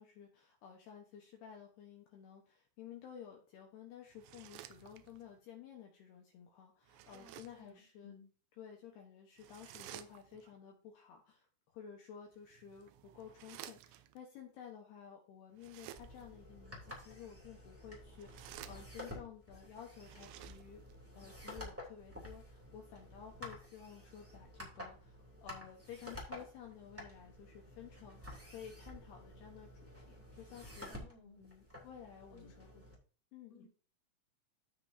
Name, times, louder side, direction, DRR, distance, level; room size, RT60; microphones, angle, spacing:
voice 1, 0.0-8.1 8.6-20.8 21.1-30.9 31.4-32.7 33.3-33.6, left 8 dB, 70° left, 1 dB, 2.7 m, -53 dB
sound 1, 4.1-5.3 6.8-7.7 9.4-10.5 12.3-14.2 15.5-16.4 18.0-19.3 19.9-21.0, right 12 dB, 90° right, 2.5 m, -54 dB
voice 2, 7.1-8.3 30.9-31.4 32.3-32.8 33.5-33.7, left 4 dB, 30° left, -2 dB, 1.6 m, -59 dB
sound 2, 15.9-32.9, left 1 dB, 10° right, 0.9 m, -51 dB
15.0 x 5.4 x 2.7 m, 0.38 s
omnidirectional pair, 5.9 m